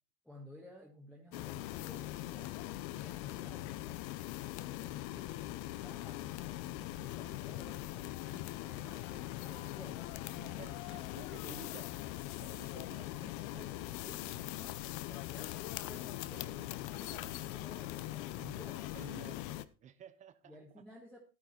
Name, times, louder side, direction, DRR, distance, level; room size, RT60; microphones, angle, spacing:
voice 1, 0.2-11.0 11.4-11.6 12.5-12.8 13.1-19.1 20.4-21.2, equal, ahead, 1.4 m, -55 dB
sound 1, 1.3-19.7, left 16 dB, 45° left, 0.7 m, -41 dB
voice 2, 10.5-11.9 12.4-13.3 18.9-20.6, right 8 dB, 15° right, 0.4 m, -53 dB
11.5 x 9.7 x 4.2 m
supercardioid pair, 155°, 44 cm